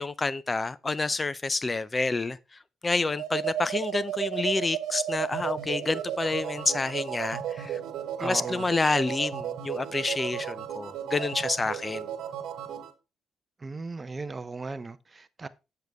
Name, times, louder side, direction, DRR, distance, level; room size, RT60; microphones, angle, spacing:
voice 1, 0.0-7.8 8.2-12.1, left 3 dB, 25° left, 0.5 m, -29 dB
sound 1, 3.1-12.9, right 10 dB, 80° right, 1.2 m, -34 dB
voice 2, 8.2-8.7 13.6-15.5, right 3 dB, 25° right, 0.7 m, -37 dB
8.0 x 6.7 x 3.5 m
cardioid pair, 90°, 0 cm